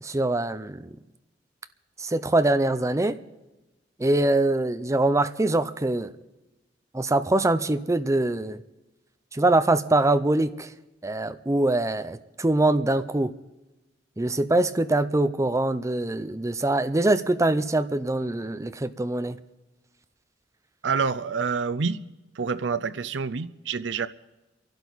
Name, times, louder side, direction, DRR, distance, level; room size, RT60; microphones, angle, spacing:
voice 1, 0.0-0.9 2.0-3.2 4.0-6.1 6.9-8.6 9.3-10.7 11.0-13.3 14.2-19.4, right 2 dB, 15° right, 12 dB, 0.6 m, -23 dB
voice 2, 20.8-22.0 22.4-24.1, right 5 dB, 85° right, 13 dB, 0.6 m, -27 dB
29.5 x 11.5 x 4.1 m, 1.0 s
head